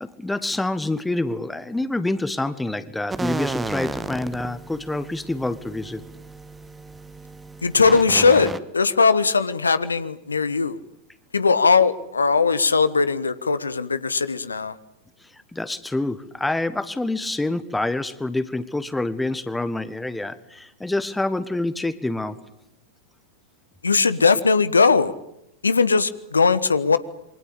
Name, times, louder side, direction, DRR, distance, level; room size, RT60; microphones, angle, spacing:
voice 1, 0.0-6.0 15.5-22.4, left 2 dB, 5° left, 14 dB, 1.5 m, -27 dB
sound 1, 3.1-8.6, right 3 dB, 10° right, 1.4 m, -33 dB
voice 2, 7.6-10.8 11.3-14.7 23.8-25.1 25.6-27.0, left 4 dB, 75° left, 14 dB, 1.3 m, -19 dB
27.5 x 24.5 x 8.7 m, 0.82 s
figure-of-eight pair, 90°, 0 cm